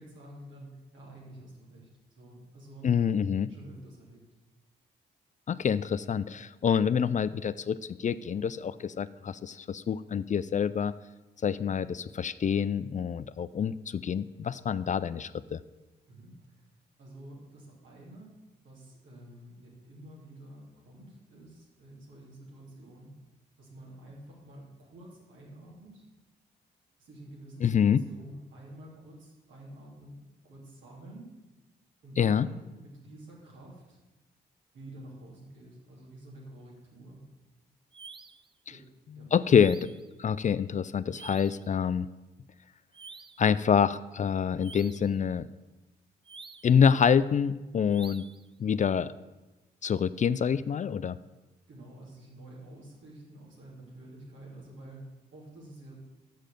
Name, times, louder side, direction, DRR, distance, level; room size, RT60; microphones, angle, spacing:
voice 1, 0.0-1.9 2.2-2.9 3.5-4.2 16.1-16.7 17.0-18.3 18.6-23.1 23.6-26.0 27.0-31.3 32.0-34.0 34.7-37.2 38.7-38.9 39.1-39.3 51.7-55.9, right 1 dB, 70° right, -3 dB, 2.8 m, -49 dB
voice 2, 2.8-3.5 5.5-10.9 11.4-15.6 27.6-28.0 32.2-32.5 39.3-39.9 40.2-42.1 43.4-45.5 46.6-48.2 48.6-49.1 49.8-51.2, left 7 dB, 40° left, 16 dB, 0.4 m, -26 dB
sound 1, 37.9-38.5 39.5-40.1 41.1-41.7 42.9-43.5 44.6-45.2 46.3-46.8 47.9-48.5, right 4 dB, 25° right, 0.5 m, -48 dB
6.5 x 6.3 x 7.6 m, 1.1 s
hypercardioid pair, 40°, 20 cm